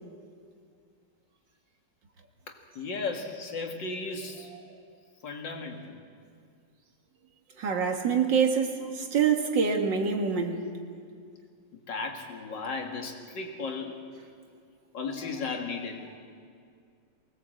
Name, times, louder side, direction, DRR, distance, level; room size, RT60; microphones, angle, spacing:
voice 1, 2.5-4.5 5.2-6.0 11.7-14.1 14.9-16.0, left 4 dB, 75° left, 2.7 m, -35 dB
voice 2, 7.6-10.7, right 6 dB, 80° right, 2.4 m, -26 dB
23.0 x 19.5 x 7.7 m
omnidirectional pair, 2.0 m